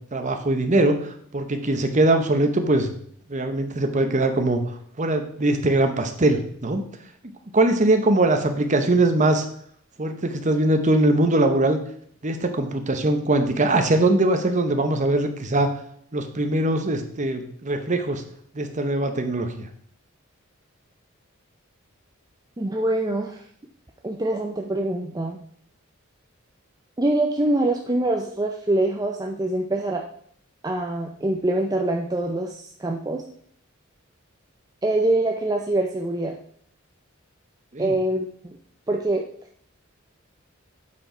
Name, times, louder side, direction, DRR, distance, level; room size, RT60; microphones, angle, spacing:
voice 1, 0.1-1.0 1.3-2.9 3.3-4.6 5.0-6.8 7.5-9.4 10.0-11.8 12.2-15.7 16.1-18.2 18.5-19.7 37.7-37.9, right 2 dB, 35° right, 6 dB, 0.9 m, -21 dB
voice 2, 22.6-23.4 24.0-25.4 27.0-30.0 30.6-33.2 34.8-36.4 37.8-38.6 38.9-39.2, right 1 dB, 20° right, 1 dB, 0.5 m, -24 dB
8.4 x 4.7 x 4.4 m, 0.62 s
head